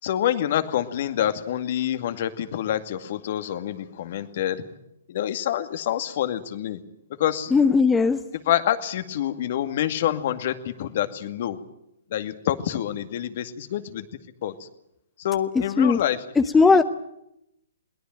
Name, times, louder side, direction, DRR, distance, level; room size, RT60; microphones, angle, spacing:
voice 1, 0.0-4.6 5.1-6.8 7.2-7.5 8.5-11.6 12.1-14.1 14.4-14.7 15.2-16.2, left 11 dB, 50° left, 9 dB, 2.2 m, -27 dB
voice 2, 7.5-8.2 15.8-16.0 16.4-16.8, left 4 dB, 10° left, 10 dB, 0.9 m, -17 dB
22.0 x 18.0 x 9.2 m, 0.80 s
hypercardioid pair, 135°, 0 cm